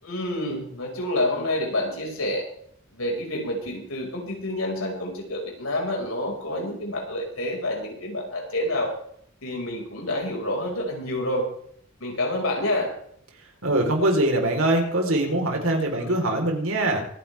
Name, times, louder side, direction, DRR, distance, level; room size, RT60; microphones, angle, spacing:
voice 1, 0.0-2.4 2.9-8.9 9.4-11.4 12.0-12.9 15.9-16.1, left 1 dB, 85° left, 0 dB, 5.9 m, -28 dB
voice 2, 13.6-17.0, right 1 dB, 75° right, 2 dB, 4.3 m, -23 dB
25.0 x 10.5 x 3.6 m, 0.64 s
head